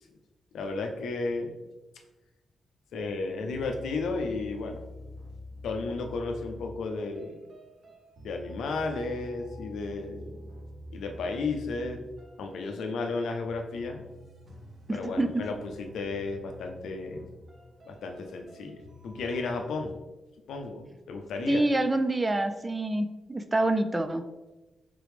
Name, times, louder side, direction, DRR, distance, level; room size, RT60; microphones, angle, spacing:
voice 1, 0.5-1.7 2.9-4.8 5.6-7.4 8.2-10.4 10.9-12.0 12.4-14.0 14.9-17.3 17.9-19.9 20.5-21.6, left 3 dB, 85° left, 4 dB, 0.5 m, -33 dB
sound 1, 3.5-19.8, left 1 dB, 45° right, 0.8 m, -47 dB
voice 2, 14.9-15.3 21.5-24.2, right 2 dB, 20° right, 9 dB, 0.3 m, -27 dB
3.6 x 3.1 x 3.4 m, 1.1 s
cardioid pair, 75°, 0 cm